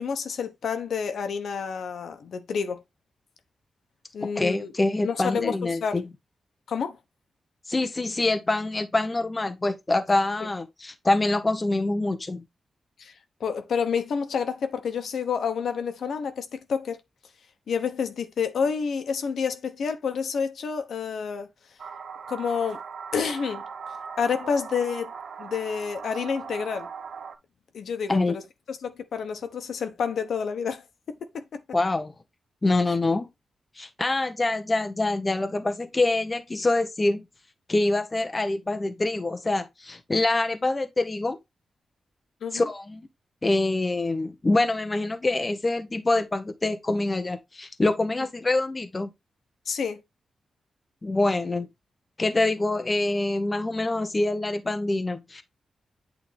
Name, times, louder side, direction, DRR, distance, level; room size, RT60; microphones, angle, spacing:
voice 1, 0.0-2.8 4.1-4.7 5.0-5.6 5.8-5.9 6.7-7.0 13.0-13.1 13.4-17.0 17.7-21.5 22.3-22.8 23.1-23.6 24.2-25.1 25.4-26.9 27.7-28.4 28.7-31.6 42.4-42.7 49.7-50.0, left 6 dB, 75° left, 1.0 m, -29 dB
voice 2, 4.2-6.0 7.7-12.4 28.1-28.4 31.7-32.1 32.6-33.3 33.8-37.2 37.7-41.4 42.5-43.1 43.4-49.1 51.0-51.7 52.2-55.4, left 2 dB, 20° left, 0.7 m, -25 dB
sound 1, 21.8-27.4, right 6 dB, 60° right, 0.7 m, -39 dB
8.6 x 3.5 x 3.4 m
wide cardioid pair, 120°, 0 cm